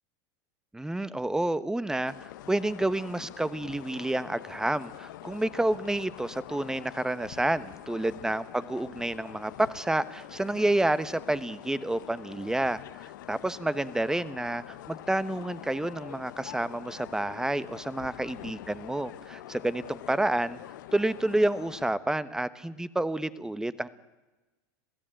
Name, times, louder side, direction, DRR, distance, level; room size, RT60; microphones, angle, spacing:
voice 1, 0.7-12.8 13.3-20.6 20.9-23.9, right 1 dB, 5° right, 15 dB, 1.1 m, -29 dB
sound 1, 2.1-21.9, left 14 dB, 80° left, 1.1 m, -45 dB
27.0 x 16.5 x 9.0 m, 1.1 s
supercardioid pair, 115°, 10 cm